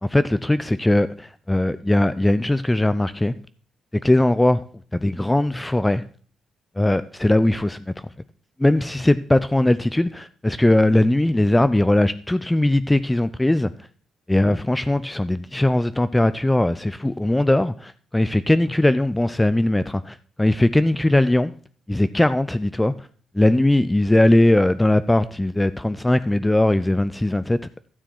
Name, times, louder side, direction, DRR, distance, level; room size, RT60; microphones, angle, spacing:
voice 1, 0.0-3.3 4.0-4.6 4.9-6.0 6.8-7.9 8.6-13.7 14.3-21.5 21.9-22.9 23.3-27.6, left 1 dB, 10° left, 0.4 m, -19 dB
12.0 x 6.9 x 4.5 m
cardioid pair, 90°, 0 cm